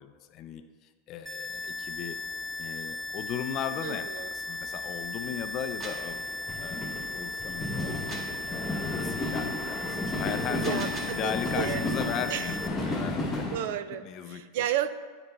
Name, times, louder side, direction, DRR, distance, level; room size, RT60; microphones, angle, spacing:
voice 1, 0.0-2.2 2.6-6.3 6.6-8.2 8.5-13.5 14.0-14.4, left 9 dB, 40° left, 9 dB, 0.4 m, -37 dB
sound 1, 1.3-12.7, left 2 dB, 5° right, 0.6 m, -37 dB
sound 2, 1.6-1.7 1.9-2.8 3.0-13.6, left 2 dB, 10° left, 1.4 m, -34 dB
voice 2, 3.8-4.3 10.5-11.9 12.3-12.5 13.5-14.9, right 10 dB, 65° right, 12 dB, 0.4 m, -33 dB
sound 3, 5.6-6.1 8.1-8.4 10.4-11.3, right 2 dB, 30° right, 1.2 m, -41 dB
13.5 x 4.9 x 2.3 m, 1.5 s
supercardioid pair, 130°, 0 cm